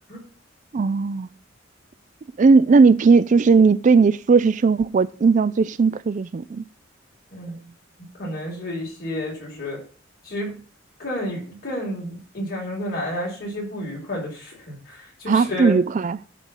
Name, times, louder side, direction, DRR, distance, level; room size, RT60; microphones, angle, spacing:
voice 1, 0.7-1.3 2.4-6.6 15.3-16.2, right 4 dB, 40° right, 0.3 m, -17 dB
voice 2, 8.1-9.8 10.2-10.6 11.0-15.8, left 1 dB, 50° left, 4.7 m, -30 dB
11.5 x 3.9 x 7.3 m
head